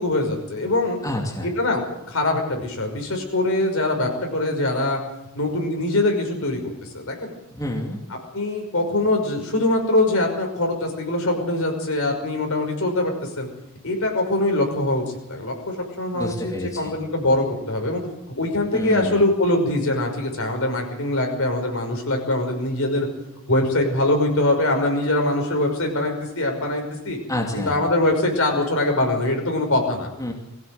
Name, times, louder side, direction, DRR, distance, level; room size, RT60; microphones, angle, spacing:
voice 1, 0.0-1.0 1.4-5.0 5.3-7.3 8.3-13.5 13.8-15.0 15.3-18.0 18.4-23.1 23.5-27.2 27.5-30.1, left 2 dB, 65° left, 3 dB, 5.7 m, -23 dB
voice 2, 1.0-1.5 7.5-8.0 16.1-17.0 18.7-19.2 27.3-27.8 30.2-30.3, left 1 dB, 15° left, 0 dB, 2.5 m, -28 dB
22.5 x 16.0 x 8.0 m, 0.85 s
head